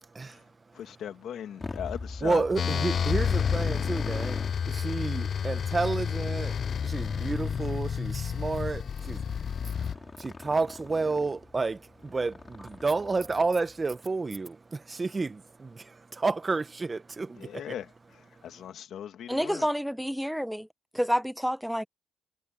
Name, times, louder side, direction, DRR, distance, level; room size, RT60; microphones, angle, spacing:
voice 1, 0.7-2.9 3.2-3.3 17.4-19.7, left 9 dB, 70° left, 2.1 m, -39 dB
Motorcycle, 1.6-13.7, left 3 dB, 25° left, 6.0 m, -43 dB
voice 2, 2.2-4.4 4.7-6.6 6.8-9.2 10.2-17.5, right 3 dB, 25° right, 1.2 m, -30 dB
sound 1, 2.6-10.0, left 7 dB, 50° left, 0.3 m, -30 dB
voice 3, 19.3-20.7 20.9-21.8, equal, ahead, 1.1 m, -29 dB
cardioid pair, 90°, 0 cm